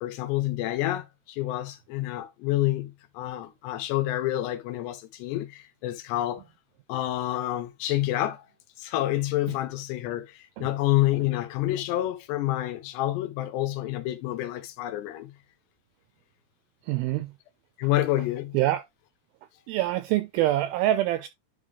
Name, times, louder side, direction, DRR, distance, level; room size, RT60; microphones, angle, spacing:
voice 1, 0.0-6.4 6.9-8.4 8.8-15.3 17.8-18.6, left 15 dB, 90° left, 3.1 m, -28 dB
voice 2, 16.9-17.3 18.5-18.8 19.7-21.3, right 14 dB, 85° right, 2.1 m, -25 dB
10.5 x 3.7 x 3.4 m
omnidirectional pair, 4.8 m